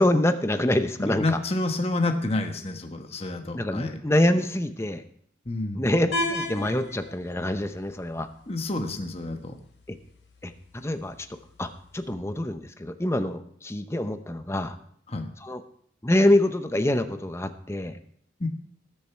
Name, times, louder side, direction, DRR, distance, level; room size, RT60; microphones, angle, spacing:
voice 1, 0.0-1.4 3.5-5.0 5.7-8.3 9.9-10.0 10.4-14.7 15.4-15.6 16.0-18.0, left 1 dB, 15° left, 9 dB, 0.7 m, -25 dB
voice 2, 1.0-4.0 5.5-5.9 8.5-9.6 15.1-15.3 18.4-18.5, left 2 dB, 30° left, 5 dB, 1.2 m, -29 dB
sound 1, 6.1-12.1, left 1 dB, 75° left, 5.0 m, -37 dB
20.0 x 7.0 x 4.5 m, 0.66 s
head